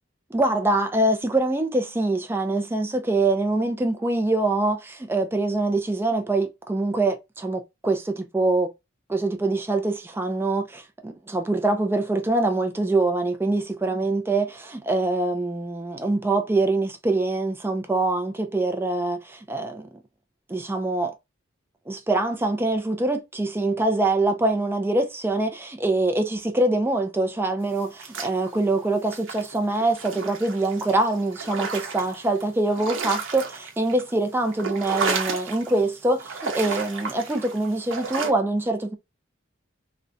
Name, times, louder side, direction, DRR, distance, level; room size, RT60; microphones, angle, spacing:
voice 1, 0.3-8.7 9.1-19.9 20.5-21.1 21.9-38.9, right 2 dB, 10° right, 0.3 m, -24 dB
sound 1, 27.8-28.7 29.1-32.4 32.7-34.1 34.4-35.8 36.2-38.3, right 4 dB, 70° right, 0.7 m, -32 dB
2.6 x 2.1 x 2.4 m
head